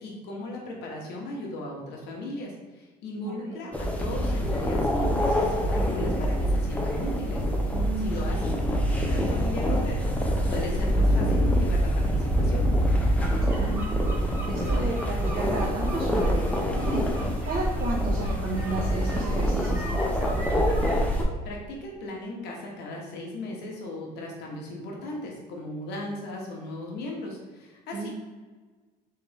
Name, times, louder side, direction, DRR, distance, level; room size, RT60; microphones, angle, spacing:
voice 1, 0.0-12.7 21.4-28.1, left 1 dB, 80° left, -1 dB, 1.1 m, -37 dB
voice 2, 3.2-3.6 7.7-8.1 13.4-17.0 17.4-20.3 27.9-28.1, right 2 dB, 60° right, -7 dB, 1.2 m, -33 dB
sound 1, 3.7-21.2, equal, 10° left, 0.6 m, -25 dB
sound 2, 13.0-21.2, equal, 15° right, 1.0 m, -42 dB
3.9 x 3.4 x 3.4 m, 1.3 s
cardioid pair, 110°, 17 cm